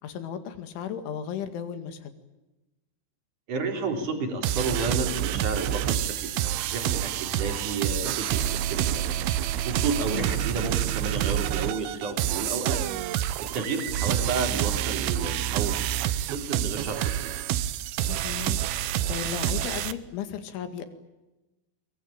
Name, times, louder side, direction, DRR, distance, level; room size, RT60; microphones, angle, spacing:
voice 1, 0.0-2.1 10.1-10.4 18.1-18.6 19.1-20.9, left 9 dB, 75° left, 9 dB, 4.5 m, -35 dB
voice 2, 3.5-9.2 9.6-12.8 13.4-17.3, right 4 dB, 45° right, 4 dB, 5.1 m, -31 dB
sound 1, 4.4-19.9, right 12 dB, 75° right, 2.4 m, -28 dB
24.0 x 23.5 x 8.9 m, 1.1 s
omnidirectional pair, 5.6 m